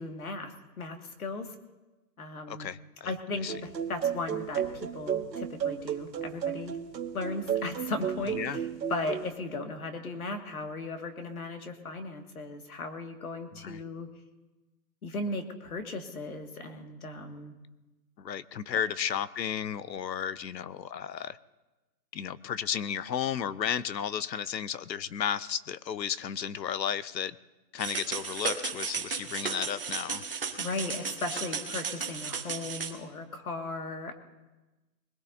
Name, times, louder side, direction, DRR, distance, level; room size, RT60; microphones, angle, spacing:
voice 1, 0.0-1.6 2.2-2.7 3.0-6.8 7.1-14.1 15.0-17.6 30.6-34.1, left 2 dB, 55° left, 4 dB, 2.1 m, -37 dB
voice 2, 2.5-3.1 3.4-3.5 8.3-8.6 13.6-13.8 18.2-21.4 22.1-27.4 27.7-30.2, left 8 dB, 85° left, 17 dB, 0.8 m, -33 dB
sound 1, 3.5-9.3, right 8 dB, 80° right, 1.4 m, -33 dB
sound 2, 27.8-32.9, right 5 dB, 35° right, 1.1 m, -35 dB
22.0 x 20.5 x 2.7 m, 1.1 s
hypercardioid pair, 180°, 50 cm